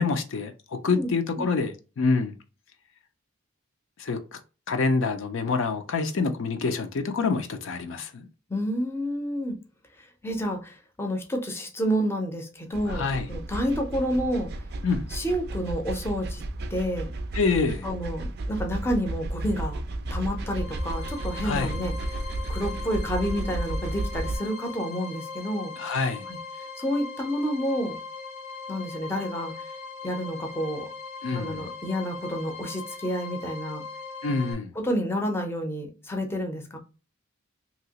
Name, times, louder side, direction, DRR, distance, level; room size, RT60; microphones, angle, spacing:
voice 1, 0.0-2.3 4.0-4.4 4.7-8.3 12.9-13.3 14.8-15.1 17.3-17.9 21.4-21.8 25.8-26.2 31.2-31.7 34.2-34.7, left 4 dB, 65° left, 0.5 m, -26 dB
voice 2, 0.9-1.5 8.5-9.6 10.0-14.5 15.1-16.4 16.7-17.1 17.8-19.8 20.1-21.9 22.5-25.7 26.3-26.4 26.8-28.0 28.7-29.7 30.0-30.9 31.3-33.8 34.8-36.8, equal, 10° left, 0.6 m, -29 dB
sound 1, 12.7-24.4, right 1 dB, 50° right, 0.4 m, -33 dB
sound 2, 20.4-34.5, left 4 dB, 85° left, 1.3 m, -40 dB
2.9 x 2.8 x 2.8 m
head